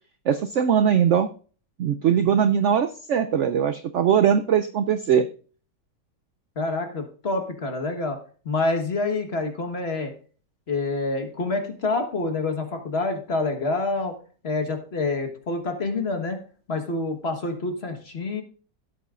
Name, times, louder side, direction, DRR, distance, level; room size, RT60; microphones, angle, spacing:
voice 1, 0.3-1.3 1.8-5.3, right 8 dB, 80° right, 10 dB, 0.6 m, -21 dB
voice 2, 6.5-8.2 8.4-10.1 10.7-14.2 14.4-16.4 16.7-18.4, left 3 dB, 40° left, 5 dB, 1.5 m, -27 dB
16.5 x 8.1 x 2.5 m, 0.39 s
omnidirectional pair, 1.9 m